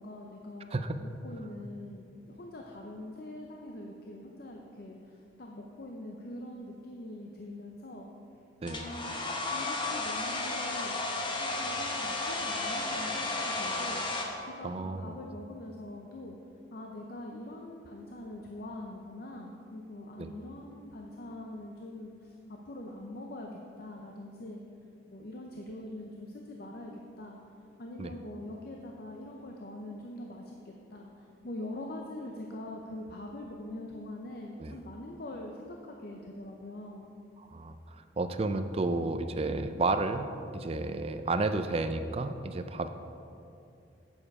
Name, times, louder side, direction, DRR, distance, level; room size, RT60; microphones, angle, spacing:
voice 1, 0.0-8.1 8.6-14.0 14.4-16.4 16.7-24.6 25.1-26.9 27.2-27.4 27.8-37.1, left 1 dB, 55° left, 0 dB, 0.7 m, -43 dB
Domestic sounds home sounds, 8.7-14.3, left 2 dB, 25° left, 0.9 m, -33 dB
voice 2, 14.6-15.2 20.2-20.3 28.0-28.1 34.6-34.8 37.4-42.9, right 2 dB, 30° right, 9 dB, 0.4 m, -32 dB
8.8 x 7.3 x 4.8 m, 2.6 s
head